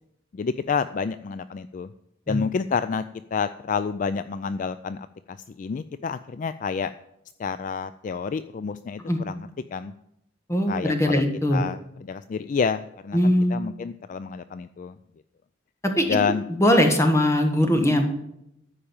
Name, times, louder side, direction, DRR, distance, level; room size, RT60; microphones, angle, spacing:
voice 1, 0.3-1.9 2.3-3.0 3.3-6.9 7.4-9.9 10.7-11.2 11.5-15.0 16.1-16.4, left 5 dB, 45° left, 12 dB, 0.3 m, -29 dB
voice 2, 10.5-11.6 13.1-13.6 15.8-18.1, left 1 dB, 15° left, 4 dB, 1.5 m, -21 dB
13.5 x 5.1 x 7.1 m, 0.81 s
head